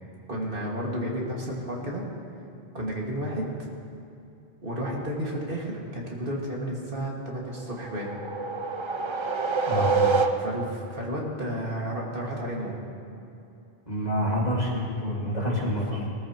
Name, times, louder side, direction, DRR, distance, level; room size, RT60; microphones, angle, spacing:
voice 1, 0.3-2.1 2.7-3.7 4.6-8.1 10.4-12.8 15.2-16.1, equal, 55° right, -3 dB, 2.1 m, -32 dB
sound 1, 7.6-10.8, right 4 dB, 40° right, 0.5 m, -27 dB
voice 2, 9.7-10.0 13.9-15.8, equal, 40° left, -3 dB, 2.1 m, -27 dB
19.5 x 14.0 x 2.9 m, 2.6 s
omnidirectional pair, 1.1 m